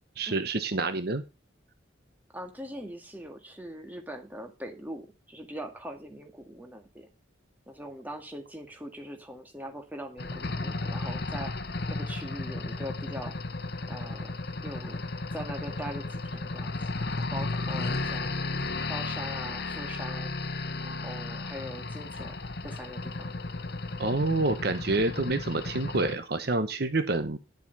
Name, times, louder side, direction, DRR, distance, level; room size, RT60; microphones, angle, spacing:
voice 1, 0.2-1.2 24.0-27.4, right 2 dB, 55° right, 10 dB, 1.0 m, -28 dB
voice 2, 2.3-7.1 7.7-11.5 11.9-13.3 13.9-14.3 14.6-15.1 15.3-16.8 17.2-18.4 18.9-20.3 20.8-22.4 22.6-23.3, equal, 10° right, 4 dB, 2.0 m, -41 dB
sound 1, 10.2-26.2, left 3 dB, 55° left, 1.0 m, -34 dB
10.5 x 7.5 x 5.5 m, 0.28 s
head